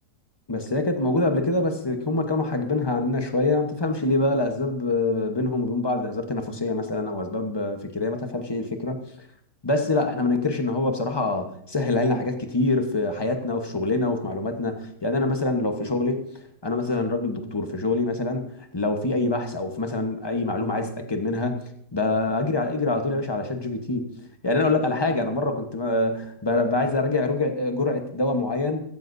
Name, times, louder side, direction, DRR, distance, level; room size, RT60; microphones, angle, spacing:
voice 1, 0.5-9.0 9.6-16.3 16.6-18.5 18.7-21.6 21.9-24.1 24.4-28.8, left 2 dB, 20° left, 5 dB, 0.8 m, -25 dB
14.5 x 14.0 x 2.7 m, 0.69 s
omnidirectional pair, 1.8 m